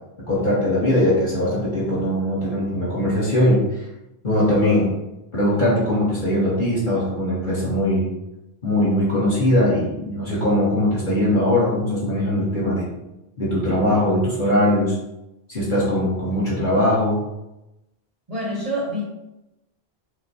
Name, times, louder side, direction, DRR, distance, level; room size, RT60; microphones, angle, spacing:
voice 1, 0.3-3.6 4.2-4.9 5.3-8.1 8.6-12.9 13.4-14.9 15.5-17.2, left 1 dB, 45° left, -9 dB, 1.4 m, -20 dB
voice 2, 18.3-19.0, equal, 35° right, -5 dB, 0.9 m, -26 dB
6.2 x 2.2 x 2.7 m, 0.92 s
omnidirectional pair, 1.1 m